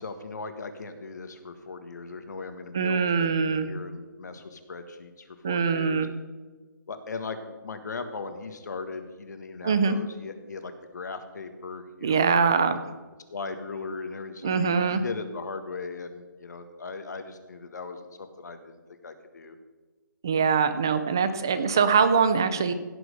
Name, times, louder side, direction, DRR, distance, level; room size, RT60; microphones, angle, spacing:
voice 1, 0.0-6.1 6.9-12.5 13.3-19.6, left 4 dB, 60° left, 8 dB, 1.7 m, -38 dB
voice 2, 2.7-3.7 5.4-6.1 9.6-10.0 12.0-12.8 14.4-15.0 20.2-22.7, right 5 dB, 10° right, 11 dB, 0.3 m, -23 dB
16.5 x 6.2 x 6.6 m, 1.3 s
hypercardioid pair, 180°, 11 cm